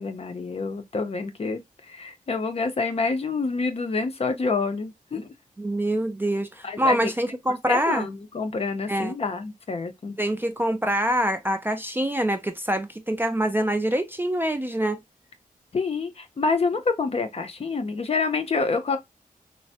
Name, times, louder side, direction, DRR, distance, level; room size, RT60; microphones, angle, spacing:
voice 1, 0.0-1.6 1.9-5.3 6.6-7.1 7.7-10.2 15.7-19.0, left 4 dB, 45° left, 0.5 m, -27 dB
voice 2, 5.6-8.1 8.9-9.1 10.2-15.0, right 1 dB, 15° right, 0.3 m, -25 dB
3.2 x 2.0 x 2.7 m
wide cardioid pair, 120°, 15 cm